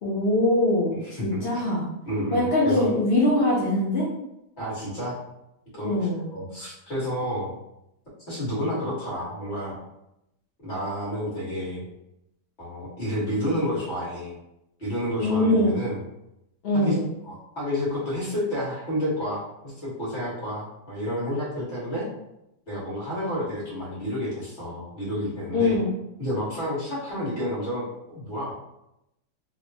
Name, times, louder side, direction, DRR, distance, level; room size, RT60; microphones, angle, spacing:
voice 1, 0.0-1.9 2.3-4.1 5.8-6.2 15.2-15.8 16.6-17.0 25.5-25.9, left 1 dB, 65° left, -7 dB, 0.6 m, -22 dB
voice 2, 1.0-1.4 2.1-2.9 4.6-5.2 5.7-7.5 8.3-9.8 10.6-11.8 12.6-14.4 14.8-16.0 16.7-17.0 17.2-22.1 22.7-25.8 26.2-28.5, equal, 35° left, -8 dB, 1.2 m, -30 dB
3.0 x 2.1 x 2.6 m, 0.85 s
omnidirectional pair, 1.8 m